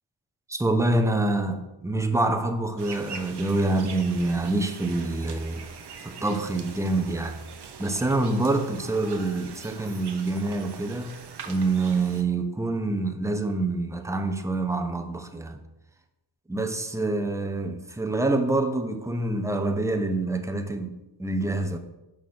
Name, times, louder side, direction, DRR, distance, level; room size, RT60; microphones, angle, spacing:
voice 1, 0.5-5.6 6.0-7.4 7.8-11.2 11.5-15.6 16.5-21.8, right 2 dB, 5° right, 0.6 m, -26 dB
sound 1, 2.8-12.2, right 6 dB, 55° right, 1.0 m, -43 dB
5.4 x 4.8 x 6.1 m
cardioid pair, 85°, 47 cm